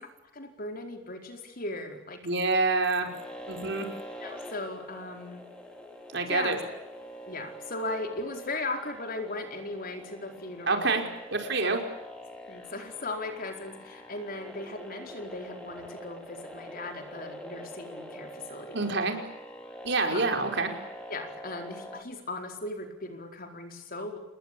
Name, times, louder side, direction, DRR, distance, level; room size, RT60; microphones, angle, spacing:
voice 1, 0.3-2.2 4.2-5.5 6.3-6.6 7.3-11.1 11.6-11.8 12.5-18.8 20.1-20.2 21.1-24.2, left 2 dB, 45° left, 5 dB, 4.6 m, -37 dB
voice 2, 2.2-3.1 3.5-3.9 6.1-6.6 10.7-11.0 11.3-11.8 18.7-19.2 19.8-20.7, right 3 dB, 60° right, 4 dB, 5.3 m, -26 dB
sound 1, 3.0-22.0, equal, 5° left, 4.6 m, -45 dB
29.5 x 20.5 x 8.7 m, 0.93 s
head